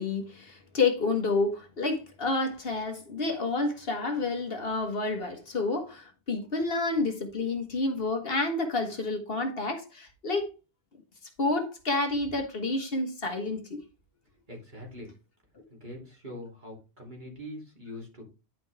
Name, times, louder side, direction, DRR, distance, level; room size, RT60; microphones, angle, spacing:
voice 1, 0.0-10.5 11.4-13.8, left 3 dB, 60° left, 1.6 m, -29 dB
voice 2, 14.4-15.1 15.7-18.3, left 1 dB, 45° right, 3.4 m, -43 dB
10.5 x 5.3 x 3.4 m
omnidirectional pair, 1.1 m